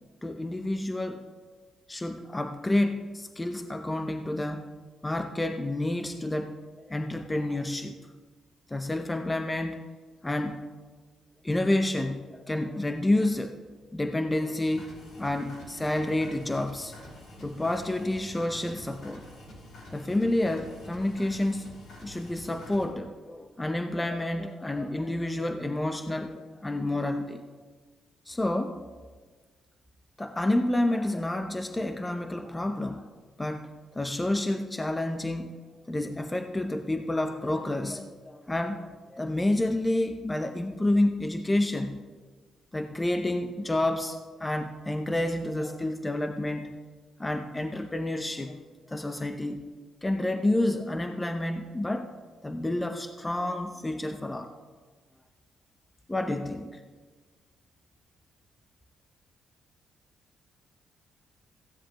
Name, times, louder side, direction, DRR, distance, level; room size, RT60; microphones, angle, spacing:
voice 1, 0.2-1.2 1.9-4.7 5.0-6.5 6.8-8.0 8.7-9.9 10.2-10.6 11.4-13.6 13.9-14.9 15.2-16.9 17.4-19.3 19.9-21.7 22.0-27.4 28.3-28.8 30.2-33.0 33.4-35.6 35.9-42.0 42.7-46.7 47.2-48.6 48.9-49.6 50.0-52.1 52.4-54.5 56.1-56.8, left 1 dB, 15° left, 7 dB, 0.6 m, -29 dB
sound 1, 14.6-22.9, left 1 dB, 60° left, 3.1 m, -48 dB
15.5 x 9.9 x 3.0 m, 1.4 s
cardioid pair, 90°, 0 cm